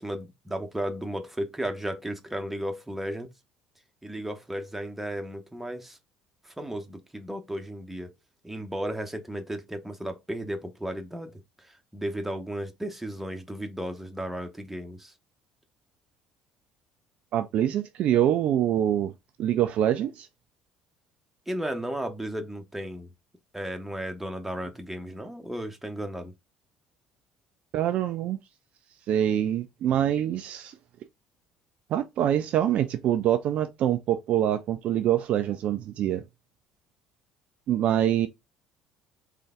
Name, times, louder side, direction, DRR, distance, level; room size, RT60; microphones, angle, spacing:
voice 1, 0.0-3.3 4.0-6.0 6.4-8.1 8.4-15.1 21.5-23.1 23.5-26.3, right 1 dB, 5° right, 0.9 m, -34 dB
voice 2, 17.3-19.1 19.4-20.3 27.7-28.4 29.1-30.7 31.9-36.2 37.7-38.3, right 11 dB, 50° right, 0.4 m, -25 dB
3.8 x 3.3 x 3.7 m
figure-of-eight pair, 55°, 3 cm